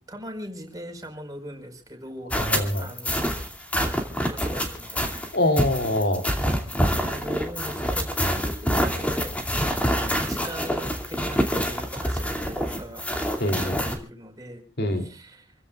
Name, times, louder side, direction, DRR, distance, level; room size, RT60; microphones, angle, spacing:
voice 1, 0.1-2.3 2.8-3.4 3.8-5.2 7.0-8.1 8.4-9.3 10.2-13.1 13.4-15.5, equal, 20° right, 3 dB, 4.8 m, -40 dB
sound 1, 2.3-14.0, equal, 10° left, 2.6 m, -26 dB
voice 2, 2.4-2.9 5.3-6.2 13.4-13.8 14.8-15.0, left 1 dB, 65° left, 5 dB, 3.1 m, -24 dB
28.5 x 15.5 x 2.4 m, 0.35 s
head